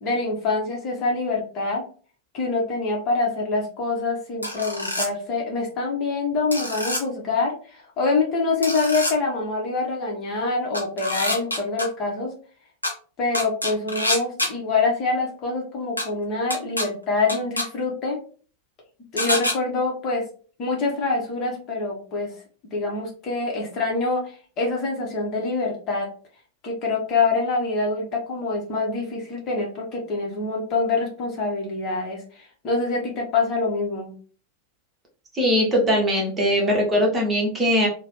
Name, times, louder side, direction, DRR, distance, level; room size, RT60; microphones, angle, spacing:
voice 1, 0.0-1.8 2.3-12.3 13.2-18.2 19.1-20.2 20.6-22.4 22.7-26.1 26.6-34.1, left 3 dB, 35° left, -1 dB, 0.9 m, -25 dB
sound 1, 4.4-5.1 6.5-7.0 8.6-9.1 10.7-11.9 12.8-12.9 13.3-14.5 16.0-16.1 16.5-16.9 17.3-17.7 19.2-19.5, left 1 dB, 85° left, 0.6 m, -26 dB
voice 2, 35.3-37.9, equal, 15° right, -2 dB, 1.1 m, -20 dB
2.9 x 2.2 x 3.1 m, 0.41 s
figure-of-eight pair, 90°, 0 cm